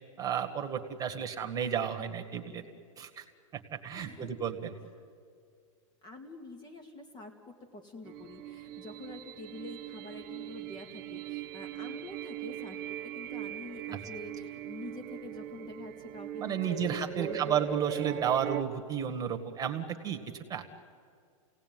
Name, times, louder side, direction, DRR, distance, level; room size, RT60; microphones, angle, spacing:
voice 1, 0.2-2.6 3.0-3.2 3.7-4.7 13.9-14.0 16.4-20.2 20.5-20.6, right 8 dB, 20° right, 7 dB, 1.8 m, -32 dB
voice 2, 3.9-4.3 6.0-17.6, left 2 dB, 25° left, 5 dB, 2.2 m, -46 dB
sound 1, 8.0-18.6, right 12 dB, 40° right, 1.1 m, -40 dB
29.5 x 18.0 x 9.5 m, 2.2 s
hypercardioid pair, 135°, 18 cm